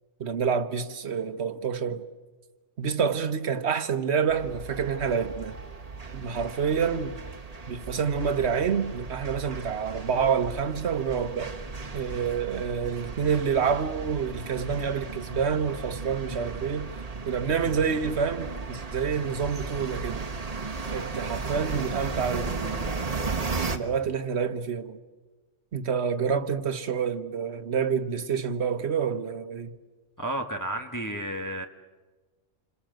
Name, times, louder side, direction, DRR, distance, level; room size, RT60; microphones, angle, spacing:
voice 1, 0.2-2.0 2.8-5.6 6.1-7.2 7.7-11.6 11.9-16.9 17.2-20.2 20.9-22.9 23.7-25.0 25.7-29.7, right 6 dB, 55° right, 1.4 m, -28 dB
sound 1, 4.3-23.8, right 4 dB, 30° right, 1.5 m, -35 dB
voice 2, 30.2-31.7, right 1 dB, 15° left, 1.3 m, -32 dB
28.0 x 26.0 x 7.8 m
omnidirectional pair, 1.3 m